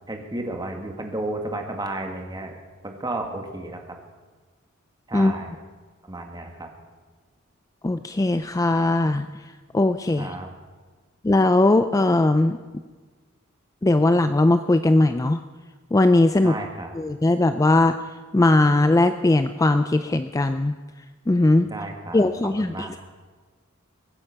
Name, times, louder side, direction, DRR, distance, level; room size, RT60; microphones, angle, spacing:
voice 1, 0.1-2.5 2.8-3.8 5.1-5.5 6.0-6.7 10.2-10.5 16.4-17.0 21.6-22.3 22.6-23.0, right 2 dB, 20° right, 3 dB, 1.8 m, -32 dB
voice 2, 7.8-9.3 9.7-10.3 11.2-12.6 13.8-15.4 15.9-16.5 16.9-17.9 18.3-20.7 21.3-21.7 22.1-22.9, left 2 dB, 15° left, 9 dB, 0.3 m, -19 dB
22.5 x 9.8 x 5.8 m, 1.4 s
head